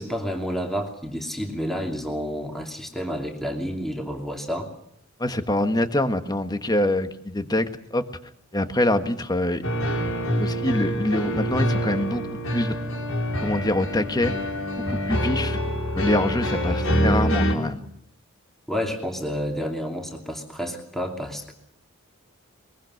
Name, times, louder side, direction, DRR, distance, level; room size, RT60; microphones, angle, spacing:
voice 1, 0.0-4.7 18.7-21.5, equal, ahead, 2 dB, 2.8 m, -30 dB
voice 2, 5.2-8.0 8.5-9.6 10.4-12.8 13.4-14.5 14.9-15.6 15.9-17.9, left 1 dB, 20° left, 9 dB, 1.5 m, -25 dB
sound 1, 9.6-17.5, equal, 70° left, 6.0 m, -25 dB
22.5 x 22.5 x 6.5 m, 0.73 s
head